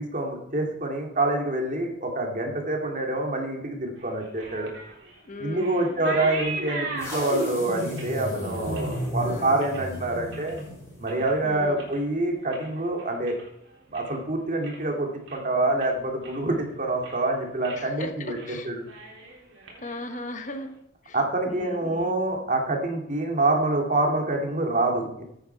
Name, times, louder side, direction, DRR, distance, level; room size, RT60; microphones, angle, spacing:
voice 1, 0.0-4.7 5.4-10.6 11.0-13.4 13.9-18.4 18.7-18.8 21.1-25.2, right 2 dB, 40° right, 2 dB, 2.5 m, -26 dB
sound 1, 4.0-10.6 11.0-11.4 11.7-14.2 14.5-14.9 15.3-15.4 15.8-16.6 16.9-17.3 17.6-17.8 18.2-18.5 18.8-20.7, right 3 dB, 70° right, 3.8 m, -39 dB
voice 2, 5.2-6.4 9.2-9.6 11.4-11.9 17.8-18.7 19.8-20.7 21.0-22.1, left 1 dB, 40° left, 7 dB, 1.0 m, -38 dB
sound 2, 7.0-11.3, equal, 15° left, 6.5 m, -33 dB
15.0 x 9.1 x 4.6 m, 0.76 s
head